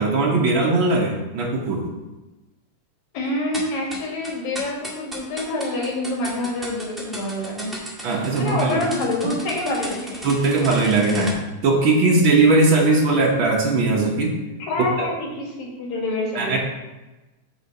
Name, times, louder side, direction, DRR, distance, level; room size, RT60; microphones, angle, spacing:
voice 1, 0.0-1.9 8.0-8.8 10.2-11.4 11.6-14.4 16.3-16.6, right 3 dB, 70° right, -1 dB, 1.1 m, -19 dB
voice 2, 3.1-7.7 8.4-10.2 14.6-16.6, left 2 dB, 65° left, -3 dB, 3.1 m, -26 dB
sound 1, 3.5-11.3, equal, ahead, 0.6 m, -35 dB
8.1 x 3.9 x 6.5 m, 1.1 s
omnidirectional pair, 3.7 m